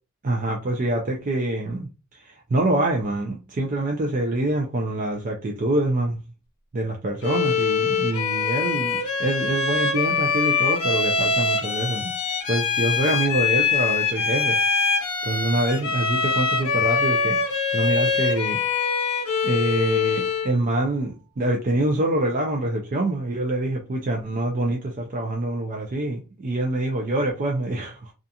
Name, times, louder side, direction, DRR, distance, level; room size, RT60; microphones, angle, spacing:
voice 1, 0.2-6.2 6.7-14.6 15.2-17.4 17.7-18.9 19.4-28.1, right 1 dB, 35° right, 0.4 m, -25 dB
Bowed string instrument, 7.2-20.6, left 5 dB, 75° left, 0.7 m, -24 dB
2.4 x 2.4 x 2.7 m
head